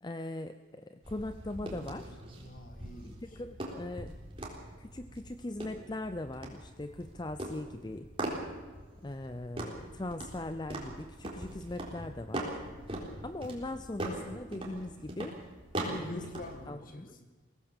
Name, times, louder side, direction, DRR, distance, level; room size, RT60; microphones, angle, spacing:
voice 1, 0.0-2.2 3.2-4.1 4.8-8.1 9.0-12.6 13.2-15.4 15.9-16.2 16.7-17.2, left 2 dB, 20° left, 10 dB, 0.5 m, -40 dB
sound 1, 1.0-16.6, right 1 dB, 25° right, 3.8 m, -41 dB
voice 2, 2.4-3.8 15.7-17.3, left 1 dB, 45° left, 6 dB, 2.1 m, -47 dB
22.5 x 17.5 x 7.1 m, 1.4 s
head